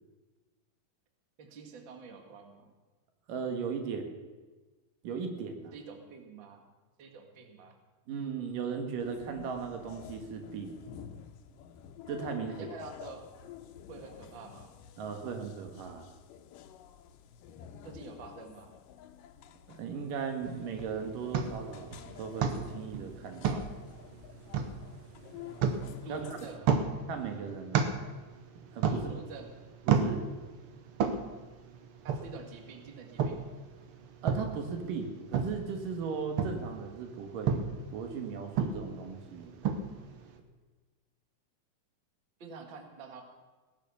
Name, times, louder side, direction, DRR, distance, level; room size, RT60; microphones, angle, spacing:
voice 1, 1.4-2.7 5.7-6.6 7.0-7.8 12.5-13.3 13.9-14.7 17.8-18.8 26.0-26.7 28.9-29.5 32.0-33.6 42.4-43.2, right 4 dB, 40° right, 4 dB, 2.1 m, -47 dB
voice 2, 3.3-4.1 5.0-5.7 8.1-10.8 12.1-12.7 15.0-16.0 19.7-23.6 26.1-26.4 27.1-27.9 28.7-29.0 29.9-30.3 34.2-39.5, right 6 dB, 80° right, 5 dB, 3.2 m, -37 dB
sound 1, 9.0-26.6, left 9 dB, 90° left, 2.5 m, -50 dB
sound 2, 20.4-40.4, right 6 dB, 60° right, 1.5 m, -34 dB
18.0 x 10.5 x 7.0 m, 1.3 s
omnidirectional pair, 3.8 m